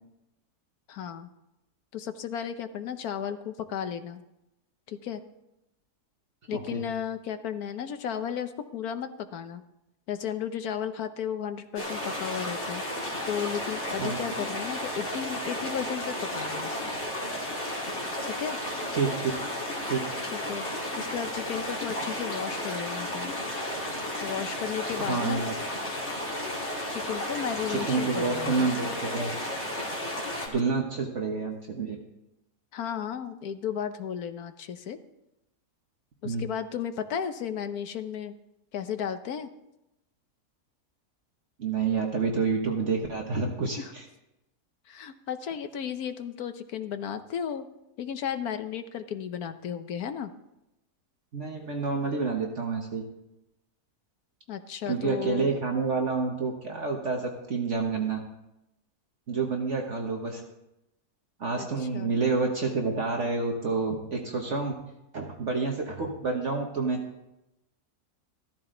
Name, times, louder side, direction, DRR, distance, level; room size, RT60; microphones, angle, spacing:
voice 1, 0.9-1.3 1.9-4.2 4.9-5.2 6.5-9.6 10.1-12.8 13.2-16.8 18.2-18.6 20.3-20.6 21.0-23.3 24.2-25.4 26.9-28.7 32.7-35.0 36.2-38.3 38.7-39.5 43.8-43.9 44.9-47.7 48.0-50.3 54.5-55.5 61.5-62.1, left 8 dB, 70° left, 9 dB, 1.3 m, -34 dB
sound 1, 11.8-30.5, left 1 dB, 45° left, 2.8 m, -33 dB
voice 2, 18.9-19.3 19.8-20.0 25.0-25.5 27.7-29.6 30.5-32.0 36.2-36.4 41.6-44.0 51.3-53.0 54.9-58.2 59.3-60.4 61.4-64.7 65.1-67.0, right 4 dB, 50° right, 1 dB, 1.5 m, -28 dB
14.5 x 13.5 x 3.9 m, 0.89 s
omnidirectional pair, 1.7 m